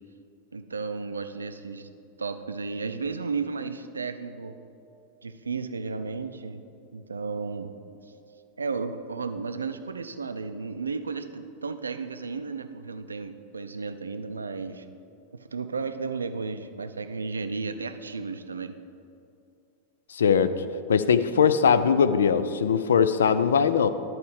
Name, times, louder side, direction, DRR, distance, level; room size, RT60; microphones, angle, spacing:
voice 1, 0.5-1.9 2.2-4.6 5.2-6.6 6.9-7.7 8.6-14.8 15.5-18.8, right 4 dB, 75° right, 9 dB, 0.4 m, -33 dB
voice 2, 20.1-20.5 20.9-23.9, left 6 dB, 65° left, 12 dB, 0.4 m, -21 dB
11.5 x 4.5 x 4.8 m, 2.6 s
figure-of-eight pair, 90°, 0 cm